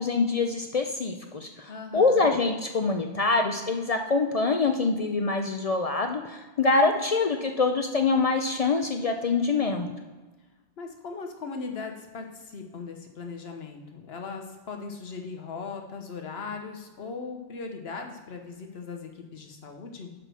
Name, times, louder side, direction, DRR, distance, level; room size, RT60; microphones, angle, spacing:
voice 1, 0.0-9.9, left 3 dB, 50° left, 5 dB, 0.4 m, -25 dB
voice 2, 1.7-2.3 10.8-20.1, left 4 dB, 70° left, 4 dB, 1.2 m, -38 dB
5.9 x 5.0 x 6.2 m, 1.3 s
omnidirectional pair, 1.1 m